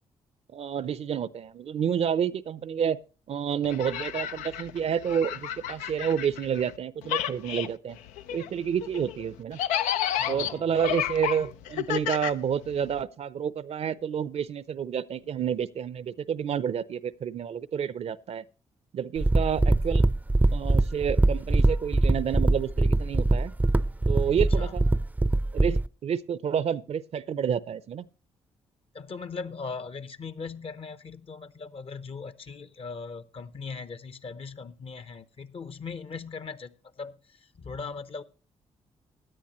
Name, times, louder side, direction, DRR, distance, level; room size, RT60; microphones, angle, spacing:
voice 1, 0.5-3.0 3.3-8.0 8.3-9.6 10.3-18.4 18.9-20.0 20.5-23.5 24.1-24.8 25.5-28.1, right 8 dB, 60° right, 0.6 m, -29 dB
sound 1, 3.6-6.8 7.0-13.0, left 11 dB, 90° left, 0.4 m, -32 dB
voice 2, 10.2-10.8 24.6-24.7 28.9-38.2, left 4 dB, 50° left, 0.9 m, -39 dB
sound 2, 19.2-25.9, right 2 dB, 10° right, 0.5 m, -23 dB
16.5 x 10.0 x 3.0 m
supercardioid pair, 50°, 12 cm